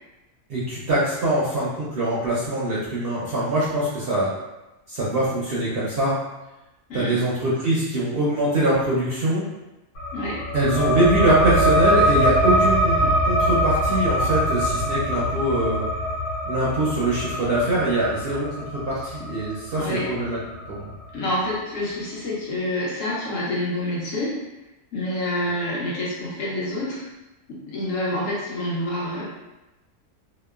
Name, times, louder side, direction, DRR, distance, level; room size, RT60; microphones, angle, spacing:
voice 1, 0.5-4.3 4.9-6.1 6.9-9.4 10.5-15.8 16.5-18.5 18.9-20.4 20.7-20.9, right 1 dB, 60° right, -7 dB, 0.6 m, -23 dB
voice 2, 6.9-7.2 10.1-10.4 19.8-20.1 21.1-24.4 24.9-27.1 27.5-29.2, left 1 dB, 70° left, -5 dB, 1.1 m, -27 dB
sound 1, 9.9-21.1, equal, 90° left, 1.3 m, -23 dB
2.8 x 2.1 x 2.3 m, 1.0 s
omnidirectional pair, 1.4 m